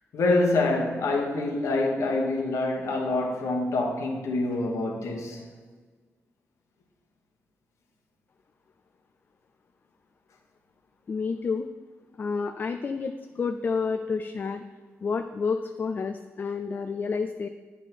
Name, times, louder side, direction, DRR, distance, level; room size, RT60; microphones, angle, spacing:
voice 1, 0.1-5.4, left 2 dB, 80° left, 1.2 m, -26 dB
voice 2, 11.1-11.7 12.2-14.6 15.0-17.5, left 5 dB, 40° left, 0.3 m, -29 dB
8.2 x 3.6 x 6.0 m
wide cardioid pair, 135°, 5 cm